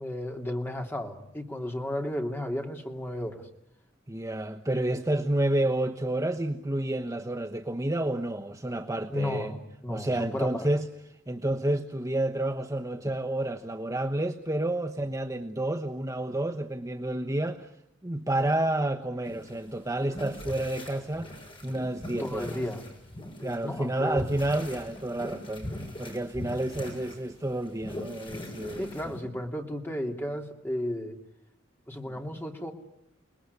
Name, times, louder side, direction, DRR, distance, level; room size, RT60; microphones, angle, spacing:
voice 1, 0.0-3.5 9.1-10.7 22.2-22.8 23.4-24.2 28.8-31.2 31.9-32.7, left 1 dB, 10° left, 3 dB, 3.0 m, -33 dB
voice 2, 4.1-9.5 9.9-10.9 11.3-17.7 18.0-21.4 21.6-22.6 23.4-25.7 26.0-29.1, right 1 dB, 15° right, 4 dB, 1.1 m, -30 dB
sound 1, 19.2-29.2, left 1 dB, 25° left, 6.4 m, -41 dB
29.5 x 20.0 x 9.7 m, 0.80 s
head